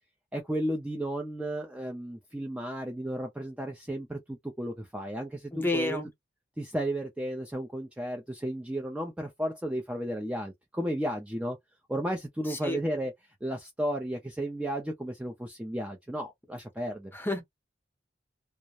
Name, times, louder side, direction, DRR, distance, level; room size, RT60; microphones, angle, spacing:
voice 1, 0.3-6.0 6.6-11.6 11.9-17.1, right 1 dB, 5° right, 0.3 m, -33 dB
voice 2, 5.5-6.1 12.5-12.8 17.1-17.4, left 2 dB, 10° left, 0.7 m, -30 dB
2.3 x 2.0 x 2.8 m
head